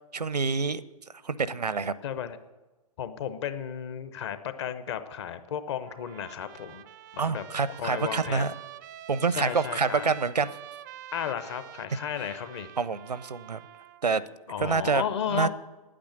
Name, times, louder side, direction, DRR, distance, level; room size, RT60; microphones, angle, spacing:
voice 1, 0.1-0.8 1.2-1.9 7.2-8.5 9.1-10.5 12.8-13.6 14.0-14.2 14.6-15.0 15.3-15.5, right 5 dB, 80° right, 18 dB, 0.6 m, -27 dB
voice 2, 2.0-2.4 3.0-6.8 7.1-8.5 9.4-10.1 11.1-12.7 14.5-15.5, left 9 dB, 45° left, 12 dB, 0.9 m, -34 dB
Trumpet, 5.9-14.1, right 12 dB, 30° right, 0.4 m, -46 dB
10.0 x 8.8 x 8.1 m, 1.2 s
figure-of-eight pair, 115°, 20 cm